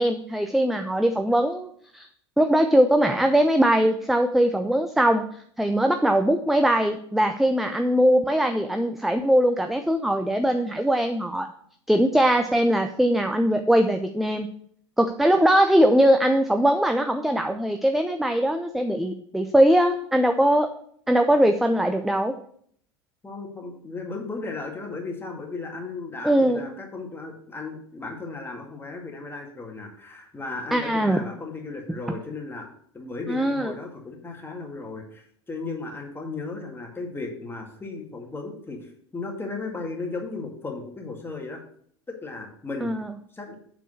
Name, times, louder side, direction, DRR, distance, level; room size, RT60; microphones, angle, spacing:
voice 1, 0.0-2.1 2.4-5.2 5.6-11.5 11.9-14.5 15.0-20.7 21.1-22.3 26.2-26.7 30.7-31.2 33.3-33.7 42.8-43.1, equal, ahead, 7 dB, 0.5 m, -21 dB
voice 2, 23.2-32.7 32.9-41.6 42.1-42.9 43.3-43.5, left 3 dB, 15° left, 1 dB, 2.0 m, -35 dB
7.2 x 4.6 x 6.4 m, 0.62 s
figure-of-eight pair, 80°, 15 cm